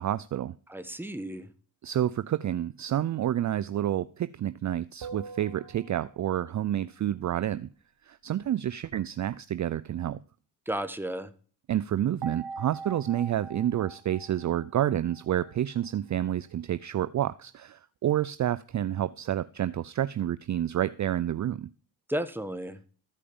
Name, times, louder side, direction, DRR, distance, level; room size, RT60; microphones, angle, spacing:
voice 1, 0.0-0.6 1.8-7.7 8.1-10.2 11.7-21.7, right 11 dB, 40° right, 16 dB, 0.5 m, -29 dB
voice 2, 0.7-1.5 10.7-11.3 22.1-22.8, right 1 dB, 5° right, 11 dB, 1.3 m, -33 dB
sound 1, 5.0-6.5 12.2-15.6, right 4 dB, 60° right, 1.3 m, -43 dB
14.0 x 4.9 x 7.1 m, 0.41 s
supercardioid pair, 45°, 45 cm